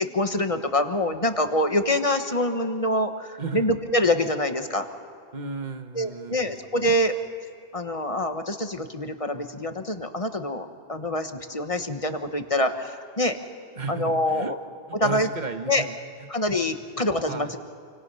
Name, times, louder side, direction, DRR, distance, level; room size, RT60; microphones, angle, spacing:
voice 1, 0.1-4.8 5.9-7.2 7.7-13.4 13.9-14.5 14.9-15.3 15.7-15.8 16.3-17.6, left 1 dB, 35° left, 7 dB, 1.3 m, -25 dB
voice 2, 5.3-6.6 13.7-14.5 14.9-16.3 17.3-17.5, right 4 dB, 45° right, 7 dB, 1.4 m, -34 dB
28.0 x 25.5 x 5.6 m, 2.3 s
omnidirectional pair, 1.1 m